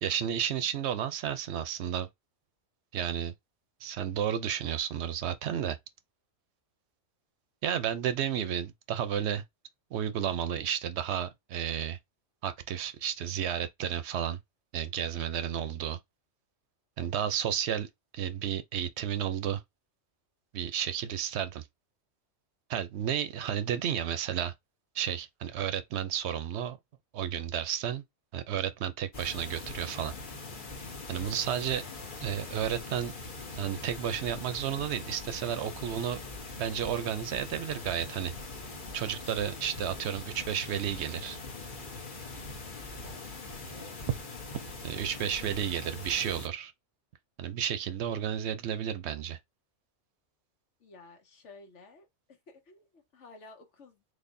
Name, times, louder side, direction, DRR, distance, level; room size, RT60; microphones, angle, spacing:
voice 1, 0.0-2.1 2.9-3.3 3.8-5.8 7.6-9.4 9.9-12.0 12.4-14.4 14.7-16.0 17.0-17.9 18.1-19.6 20.5-21.6 22.7-24.5 24.9-26.8 27.1-28.0 28.3-30.1 31.1-31.8 32.2-33.1 33.5-36.2 36.6-38.3 38.9-41.4 44.1-44.2 44.8-46.7 47.4-49.4, right 9 dB, 70° right, 0.8 m, -32 dB
voice 2, 17.0-17.4 50.8-54.0, left 3 dB, 75° left, 1.4 m, -54 dB
sound 1, 29.1-46.5, left 3 dB, 45° left, 1.0 m, -42 dB
4.1 x 3.1 x 2.6 m
omnidirectional pair, 1.2 m